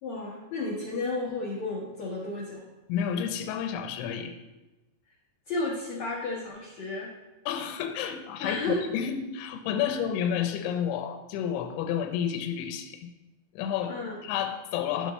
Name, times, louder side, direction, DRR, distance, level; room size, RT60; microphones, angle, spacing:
voice 1, 0.0-2.6 5.5-7.1 8.4-8.8 9.8-10.0 13.9-14.2, left 2 dB, 65° left, -6 dB, 1.8 m, -32 dB
voice 2, 2.9-4.4 7.5-13.1 13.5-15.1, left 8 dB, 85° left, 6 dB, 3.1 m, -30 dB
12.5 x 6.5 x 3.1 m, 1.1 s
omnidirectional pair, 5.4 m